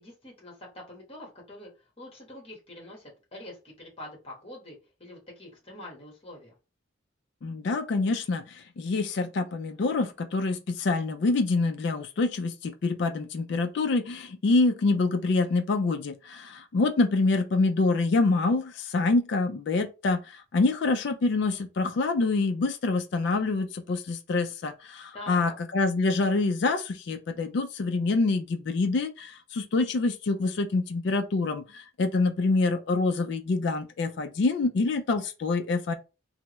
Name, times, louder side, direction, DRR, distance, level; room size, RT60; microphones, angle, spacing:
voice 1, 0.0-1.7 2.0-6.5 25.1-25.5, left 1 dB, 30° left, 1.2 m, -45 dB
voice 2, 7.4-35.9, left 3 dB, 60° left, 0.3 m, -26 dB
3.4 x 2.0 x 2.9 m
head